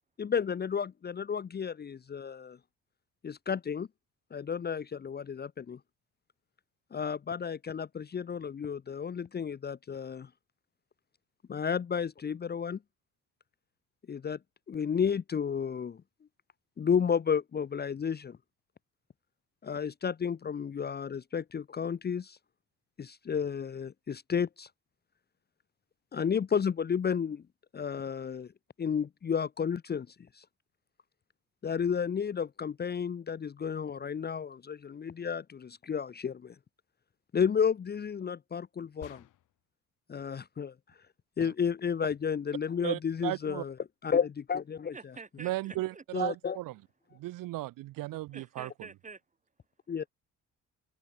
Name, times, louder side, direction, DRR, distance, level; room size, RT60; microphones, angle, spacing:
voice 1, 0.2-2.6 3.2-3.9 4.3-5.8 6.9-10.3 11.5-12.8 14.1-14.4 14.7-16.0 16.8-18.4 19.6-22.4 23.0-24.7 26.1-27.4 27.7-28.5 28.8-30.4 31.6-36.5 37.3-39.2 40.1-40.7 41.4-43.7 44.0-44.9 46.1-46.6 49.9-50.0, left 7 dB, 30° left, 1.0 m, -32 dB
sound 1, 39.0-39.7, left 13 dB, 65° left, 4.5 m, -52 dB
voice 2, 42.8-43.6 45.4-46.7 47.2-48.7, right 17 dB, 80° right, 1.7 m, -35 dB
voice 3, 44.9-46.0 48.3-49.2, right 4 dB, 25° right, 7.4 m, -47 dB
cardioid pair, 115°, 33 cm